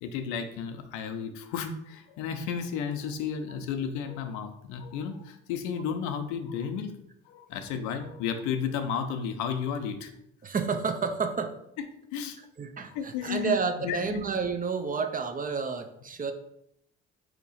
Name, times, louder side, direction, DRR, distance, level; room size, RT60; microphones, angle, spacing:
voice 1, 0.0-6.9 7.3-10.1 12.1-12.4 12.9-14.2, left 7 dB, 80° left, 7 dB, 0.6 m, -33 dB
voice 2, 10.4-11.6 12.6-16.3, right 5 dB, 30° right, 7 dB, 0.5 m, -30 dB
3.6 x 2.9 x 4.1 m, 0.76 s
supercardioid pair, 70°, 29 cm